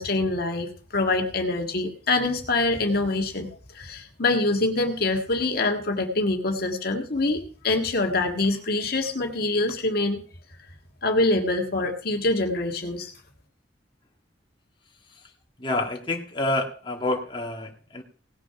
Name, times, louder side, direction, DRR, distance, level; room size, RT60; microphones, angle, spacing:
voice 1, 0.0-3.5 3.7-10.2 11.0-13.1, left 2 dB, 60° left, 2 dB, 1.7 m, -25 dB
voice 2, 15.6-18.0, left 2 dB, 30° left, 1 dB, 1.9 m, -28 dB
18.0 x 6.3 x 5.8 m, 0.41 s
head